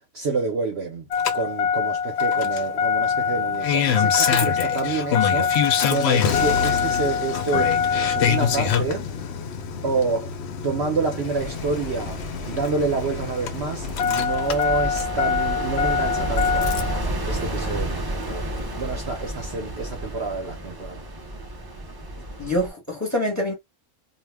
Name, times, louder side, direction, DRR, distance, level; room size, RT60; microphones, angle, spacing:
voice 1, 0.1-1.1 1.3-9.1 9.8-10.3 10.6-16.7 17.3-18.5 18.8-21.0, right 4 dB, 60° right, 0.8 m, -28 dB
Engine starting, 1.1-17.0 18.3-18.4, left 7 dB, 65° left, 0.7 m, -24 dB
sound 1, 11.3-22.7, right 1 dB, 30° right, 0.4 m, -31 dB
voice 2, 22.4-23.5, left 1 dB, 15° left, 0.9 m, -26 dB
2.3 x 2.2 x 3.3 m
omnidirectional pair, 1.4 m